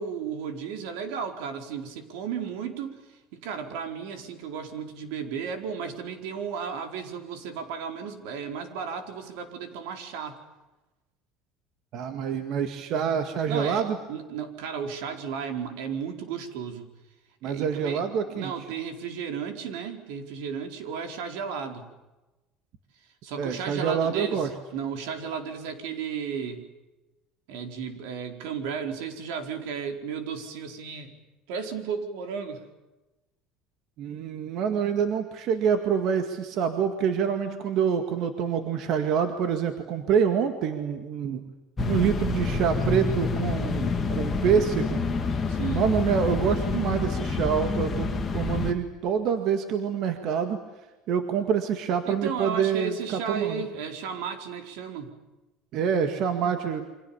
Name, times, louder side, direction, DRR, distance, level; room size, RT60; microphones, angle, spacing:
voice 1, 0.0-10.4 13.5-16.9 17.4-18.0 18.3-21.9 23.2-26.6 27.5-31.1 31.5-32.6 45.5-45.9 52.1-55.1, right 6 dB, 75° right, 6 dB, 4.6 m, -34 dB
voice 2, 11.9-14.0 17.4-18.5 23.4-24.5 34.0-41.4 41.9-45.0 45.7-48.1 48.3-50.6 51.1-53.6 55.7-56.9, right 7 dB, 45° right, 7 dB, 2.0 m, -26 dB
sound 1, 41.8-48.7, left 4 dB, 15° left, 2.0 m, -28 dB
29.0 x 25.5 x 7.2 m, 1.1 s
cardioid pair, 180°, 0 cm